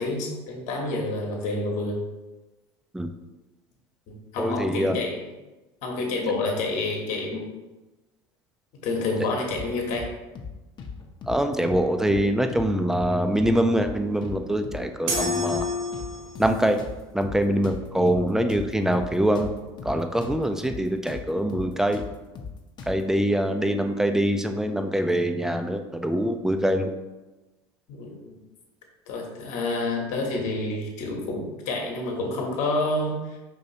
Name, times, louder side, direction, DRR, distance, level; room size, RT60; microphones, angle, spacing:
voice 1, 0.0-2.0 4.1-5.3 5.8-7.4 8.8-10.1 27.9-28.4 29.1-33.4, left 2 dB, 55° left, 0 dB, 1.1 m, -28 dB
voice 2, 4.4-5.0 11.3-15.6 16.4-16.8 17.1-19.5 19.8-22.0 22.9-26.9, right 1 dB, 5° right, 7 dB, 0.4 m, -24 dB
sound 1, 9.5-10.1 10.3-10.5 10.8-11.8 12.1-12.2 12.5-13.5 13.8-13.9 14.2-15.2 15.5-15.7 15.9-17.4 17.6-20.4 20.6-20.8 21.1-23.1, left 5 dB, 30° left, 0.7 m, -38 dB
sound 2, 15.1-16.6, left 2 dB, 65° right, 1.4 m, -28 dB
5.3 x 3.0 x 2.8 m, 1.1 s
hypercardioid pair, 80°, 14 cm